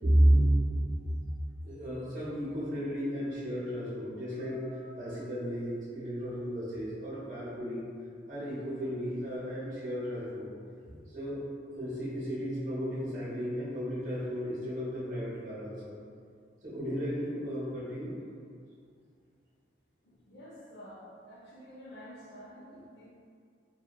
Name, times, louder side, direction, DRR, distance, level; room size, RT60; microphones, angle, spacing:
voice 1, 0.0-1.1 1.6-7.9 8.3-10.5 10.9-16.0 16.6-18.2, equal, 45° right, -8 dB, 0.8 m, -32 dB
voice 2, 20.0-23.1, equal, 60° left, -7 dB, 0.5 m, -49 dB
2.8 x 2.2 x 2.3 m, 2.3 s
head